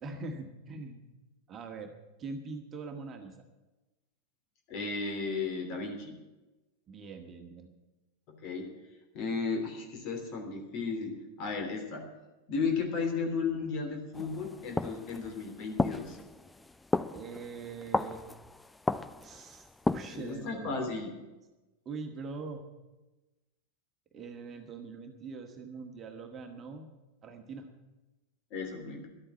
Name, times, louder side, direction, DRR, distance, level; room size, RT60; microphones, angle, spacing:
voice 1, 0.0-1.0 1.5-1.9 2.2-3.3 6.9-7.7 17.1-18.2 19.2-20.7 21.8-22.6 24.1-26.8 27.2-27.7, right 4 dB, 25° right, 4 dB, 1.6 m, -42 dB
voice 2, 4.7-6.2 8.3-8.7 9.1-12.1 12.5-16.2 20.1-21.2 28.5-29.1, left 4 dB, 40° left, 3 dB, 3.1 m, -34 dB
sound 1, 14.1-20.4, left 2 dB, 5° left, 0.4 m, -35 dB
12.0 x 8.8 x 9.6 m, 1.1 s
figure-of-eight pair, 90°, 0 cm